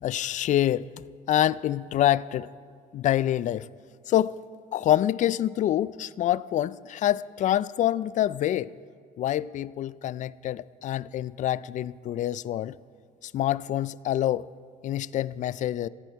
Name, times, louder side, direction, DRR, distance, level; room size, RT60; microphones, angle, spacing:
voice 1, 0.0-0.9 1.3-2.5 2.9-3.6 4.1-4.4 4.7-8.7 9.2-12.8 13.2-14.5 14.8-15.9, left 12 dB, 45° left, 0.4 m, -26 dB
17.0 x 14.0 x 4.6 m
cardioid pair, 110°, 17 cm